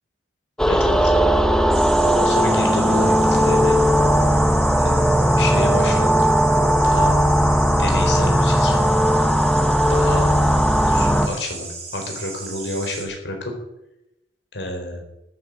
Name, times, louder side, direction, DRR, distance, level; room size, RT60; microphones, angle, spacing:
sound 1, 0.6-11.3, equal, 5° left, 0.8 m, -17 dB
voice 1, 0.7-1.1 2.0-3.8 4.8-6.3 6.8-7.1 7.8-8.7 9.9-10.3 10.8-13.5 14.5-15.0, left 1 dB, 75° left, 3 dB, 4.2 m, -29 dB
sound 2, 1.7-13.0, right 4 dB, 35° right, 3.9 m, -35 dB
13.5 x 9.6 x 7.5 m, 0.89 s
head